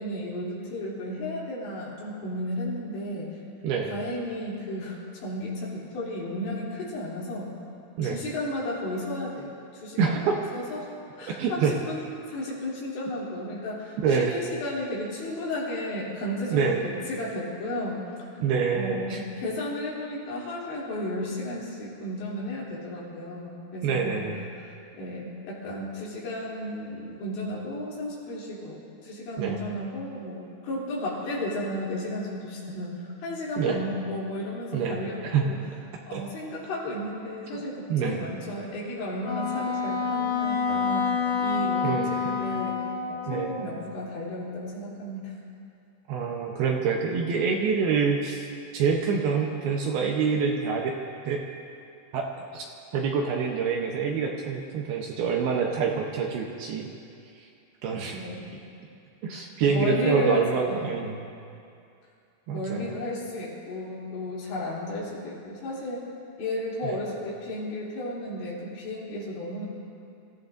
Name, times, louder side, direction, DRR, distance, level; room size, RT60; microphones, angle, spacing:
voice 1, 0.0-3.3 3.9-7.5 8.0-18.4 18.7-24.3 24.5-35.6 36.1-42.8 43.1-45.3 58.1-58.5 59.3-60.9 62.5-66.1 66.4-69.7, left 1 dB, 85° left, -6 dB, 5.6 m, -33 dB
voice 2, 10.0-10.4 11.3-11.7 14.0-14.4 16.5-16.8 18.4-19.2 23.8-24.4 29.4-29.6 33.6-33.8 34.7-35.4 36.1-36.2 37.5-37.6 37.9-38.2 41.8-42.4 43.3-43.5 46.1-48.5 48.7-51.0 51.2-51.4 52.1-52.7 52.9-56.9 57.8-58.2 59.2-61.2 62.5-62.8 66.8-67.0, right 6 dB, 75° right, 1 dB, 2.4 m, -26 dB
Wind instrument woodwind instrument, 39.2-43.7, left 5 dB, 70° left, 3.7 m, -28 dB
26.5 x 15.5 x 2.6 m, 2.5 s
omnidirectional pair, 5.1 m